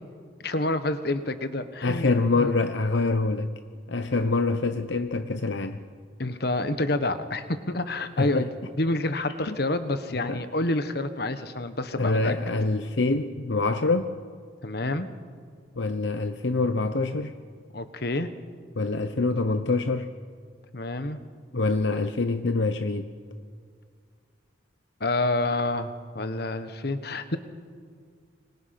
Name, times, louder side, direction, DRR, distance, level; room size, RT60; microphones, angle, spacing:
voice 1, 0.4-2.5 6.2-8.5 8.8-12.3 14.6-15.1 17.7-18.3 20.7-21.2 25.0-27.4, left 2 dB, 55° left, 10 dB, 1.4 m, -28 dB
voice 2, 1.8-3.5 3.9-5.8 8.2-8.5 9.5-9.6 10.3-10.4 12.0-14.1 15.8-17.3 18.8-20.1 21.5-23.1, left 3 dB, 70° left, 9 dB, 0.9 m, -25 dB
28.5 x 25.5 x 6.0 m, 2.1 s
head